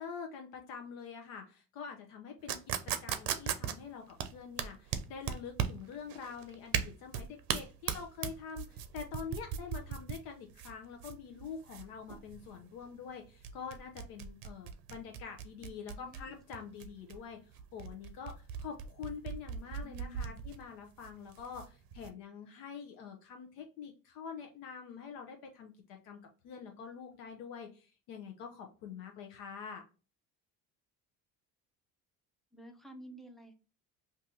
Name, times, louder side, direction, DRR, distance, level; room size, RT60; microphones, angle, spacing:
voice 1, 0.0-2.6 2.9-29.8, left 6 dB, 75° left, 3 dB, 0.7 m, -46 dB
sound 1, 2.5-22.1, right 9 dB, 70° right, 0.6 m, -38 dB
voice 2, 15.9-16.4 19.8-20.4 32.5-33.5, equal, ahead, 3 dB, 0.5 m, -51 dB
2.7 x 2.6 x 3.5 m, 0.34 s
cardioid pair, 115°, 36 cm